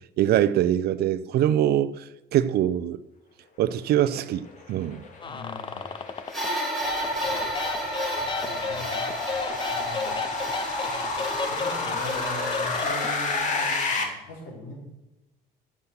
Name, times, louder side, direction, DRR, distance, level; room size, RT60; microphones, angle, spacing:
voice 1, 0.2-2.0 2.3-3.0 3.6-5.0, right 11 dB, 70° right, 0.7 m, -23 dB
sound 1, 4.5-14.0, left 3 dB, 45° left, 2.5 m, -31 dB
voice 2, 5.2-5.9 7.2-7.4 8.2-9.0 9.7-10.2 10.9-11.1 11.5-14.7, left 1 dB, 75° left, 4.7 m, -41 dB
sound 2, 5.2-6.5 6.8-13.2, left 5 dB, 30° left, 0.7 m, -34 dB
sound 3, 6.3-13.3, right 1 dB, ahead, 4.4 m, -33 dB
9.8 x 7.5 x 8.1 m
cardioid pair, 110°, 17 cm